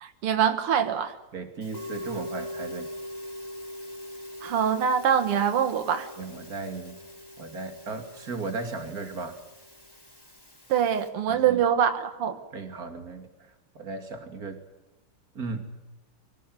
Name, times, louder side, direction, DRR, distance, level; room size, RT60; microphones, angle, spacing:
voice 1, 0.0-1.1 4.4-6.1 10.7-12.4, right 8 dB, 85° right, 9 dB, 2.2 m, -24 dB
voice 2, 1.3-2.9 6.2-7.0 7.4-9.4 11.3-11.6 12.5-14.6 15.3-15.7, right 4 dB, 40° right, 6 dB, 3.1 m, -36 dB
Musical instrument, 1.6-11.1, left 1 dB, 10° left, 4.0 m, -42 dB
24.0 x 17.5 x 9.6 m, 1.0 s
omnidirectional pair, 2.4 m